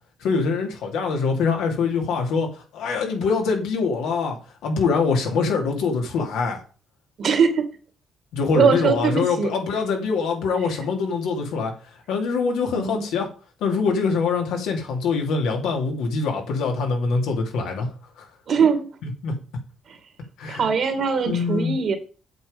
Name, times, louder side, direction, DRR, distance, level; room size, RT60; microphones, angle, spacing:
voice 1, 0.2-4.4 4.6-6.6 8.3-11.7 12.1-13.3 13.6-17.9 18.2-18.3 19.0-19.3 20.4-20.7 21.2-21.8, left 4 dB, 90° left, 2 dB, 2.7 m, -24 dB
voice 2, 7.2-7.7 8.5-9.5 12.7-13.1 18.5-18.9 19.9-20.0 20.5-22.0, right 6 dB, 60° right, 8 dB, 2.2 m, -21 dB
8.0 x 7.4 x 5.2 m, 0.37 s
cardioid pair, 90°, 0 cm